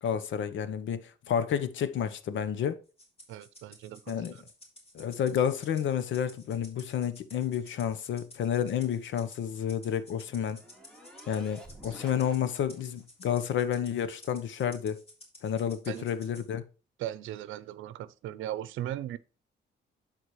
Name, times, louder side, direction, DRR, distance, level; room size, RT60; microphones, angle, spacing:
voice 1, 0.0-2.8 4.1-4.3 4.9-10.6 11.3-15.0 15.4-16.6, left 9 dB, 70° left, 0.9 m, -30 dB
Rattle (instrument), 3.0-16.5, left 1 dB, 30° left, 3.6 m, -54 dB
voice 2, 3.3-4.0 4.3-4.4 11.8-12.0 15.9-16.1 17.0-19.2, right 12 dB, 85° right, 0.6 m, -38 dB
sound 1, 9.5-13.0, equal, 5° left, 2.1 m, -52 dB
12.5 x 4.3 x 3.1 m
cardioid pair, 90°, 20 cm